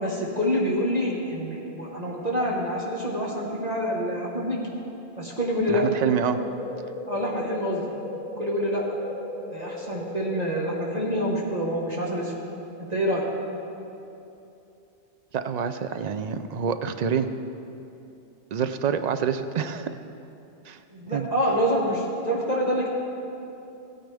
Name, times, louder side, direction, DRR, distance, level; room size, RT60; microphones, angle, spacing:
voice 1, 0.0-4.6 5.2-5.9 7.1-7.9 8.4-8.9 9.5-12.3 12.8-13.2 20.9-22.9, equal, 35° right, -4 dB, 1.4 m, -26 dB
voice 2, 5.7-6.4 15.3-17.3 18.5-19.9 20.7-20.8 21.1-21.3, right 7 dB, 55° right, 10 dB, 0.4 m, -27 dB
sound 1, 6.2-11.2, left 2 dB, 40° left, 1.0 m, -37 dB
16.0 x 9.5 x 3.4 m, 2.8 s
omnidirectional pair, 1.2 m